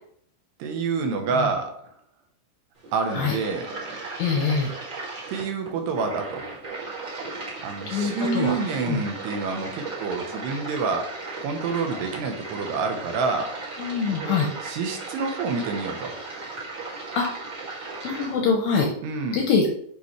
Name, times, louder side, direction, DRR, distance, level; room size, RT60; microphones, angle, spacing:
voice 1, 0.6-1.7 2.9-3.7 5.3-6.5 7.6-11.1 11.4-13.5 14.6-16.2 19.0-19.4, right 4 dB, 75° right, 4 dB, 2.9 m, -27 dB
sound 1, 2.8-18.4, right 3 dB, 35° right, 2.1 m, -36 dB
voice 2, 4.2-4.7 7.9-9.0 13.8-14.5 17.2-17.3 18.0-18.9 19.3-19.7, left 5 dB, 75° left, 1 dB, 2.2 m, -24 dB
9.4 x 5.4 x 3.2 m, 0.65 s
omnidirectional pair, 5.1 m